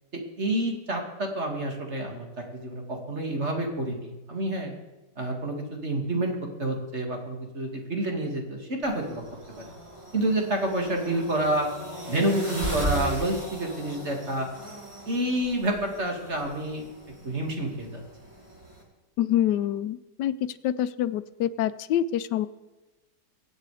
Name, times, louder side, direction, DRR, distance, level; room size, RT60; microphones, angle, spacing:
voice 1, 0.1-2.3 2.5-4.7 5.2-9.2 9.6-9.7 10.1-11.7 12.1-14.5 15.1-16.8 17.2-18.0, right 1 dB, 40° right, 2 dB, 2.5 m, -28 dB
sound 1, 8.8-18.8, right 1 dB, 15° right, 2.4 m, -37 dB
voice 2, 19.2-20.3 20.6-22.5, left 11 dB, 90° left, 14 dB, 1.3 m, -26 dB
24.0 x 8.1 x 4.9 m, 1.1 s
omnidirectional pair, 1.8 m